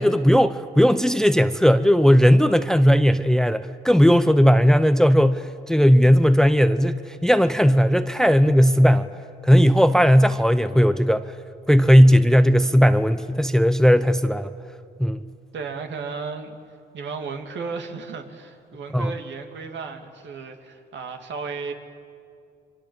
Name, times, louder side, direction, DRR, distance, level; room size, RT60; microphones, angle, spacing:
voice 1, 0.0-9.1 9.4-11.3 11.7-14.5 15.0-15.2 18.9-19.1, equal, 5° left, 12 dB, 0.7 m, -17 dB
voice 2, 15.5-16.5 16.9-21.7, right 5 dB, 65° right, 5 dB, 2.6 m, -34 dB
27.0 x 24.0 x 7.9 m, 2.4 s
cardioid pair, 90°, 20 cm